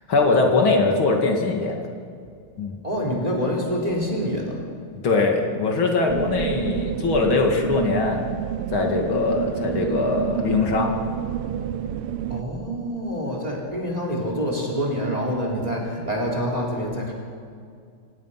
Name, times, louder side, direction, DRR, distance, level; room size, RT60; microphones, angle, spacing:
voice 1, 0.1-1.8 2.6-2.8 5.0-8.2 8.7-10.9, left 3 dB, 65° left, 2 dB, 3.0 m, -21 dB
voice 2, 2.8-4.6 12.3-17.1, equal, 15° right, -1 dB, 4.0 m, -26 dB
sound 1, 6.1-12.4, right 10 dB, 90° right, 1.6 m, -29 dB
27.5 x 18.0 x 5.9 m, 2.3 s
omnidirectional pair, 2.4 m